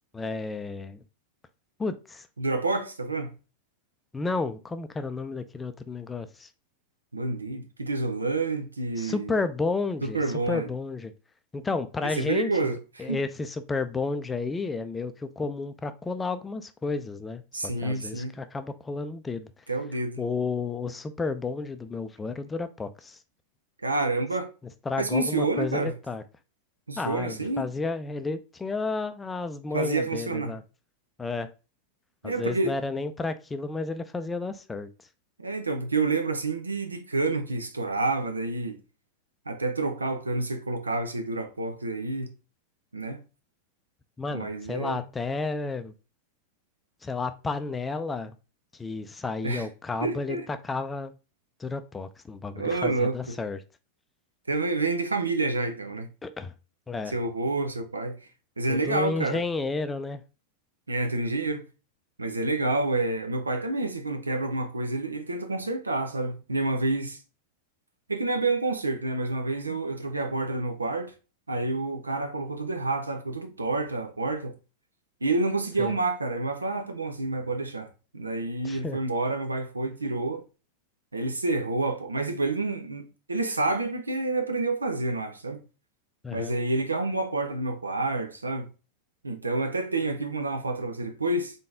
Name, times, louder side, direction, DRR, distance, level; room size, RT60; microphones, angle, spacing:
voice 1, 0.1-1.0 1.8-2.3 4.1-6.5 9.0-10.2 10.5-11.1 11.5-19.5 20.2-23.2 24.9-26.2 27.0-30.6 31.2-31.5 32.2-34.9 44.2-45.9 47.0-48.4 48.8-51.1 51.6-53.6 56.2-56.5 56.9-57.2 58.7-60.2 69.7-69.8 75.8-75.9 78.6-79.0 86.2-86.5, left 3 dB, 15° left, 0.4 m, -32 dB
voice 2, 2.4-3.3 7.1-9.3 10.0-10.7 12.2-13.2 17.5-18.3 19.7-20.2 23.8-24.5 25.0-25.9 26.9-27.7 29.7-30.6 32.2-32.7 35.4-38.8 39.5-42.3 42.9-43.2 44.3-45.0 49.4-49.7 50.0-50.5 52.5-53.4 54.5-56.1 57.1-58.2 58.6-59.4 60.9-61.6 62.2-67.2 68.1-71.1 71.5-74.5 75.2-80.4 81.1-85.6 86.3-88.7 89.2-91.6, right 2 dB, 80° right, 0.7 m, -28 dB
3.8 x 3.6 x 3.7 m
figure-of-eight pair, 90°, 0 cm